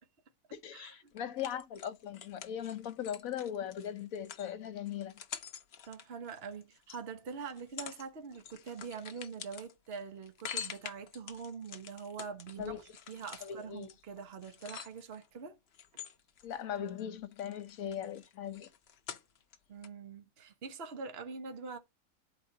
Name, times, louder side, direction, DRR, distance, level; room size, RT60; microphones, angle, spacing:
voice 1, 0.6-5.1 12.6-12.8 13.4-13.9 16.4-18.7, left 9 dB, 75° left, 1.2 m, -39 dB
sound 1, 1.2-7.0 7.5-8.1 8.3-15.3 15.7-17.0 17.3-19.6 19.8-19.9, left 8 dB, 55° left, 0.8 m, -47 dB
voice 2, 5.8-15.6 19.7-21.8, right 5 dB, 45° right, 1.3 m, -44 dB
12.5 x 4.4 x 2.7 m
omnidirectional pair, 1.5 m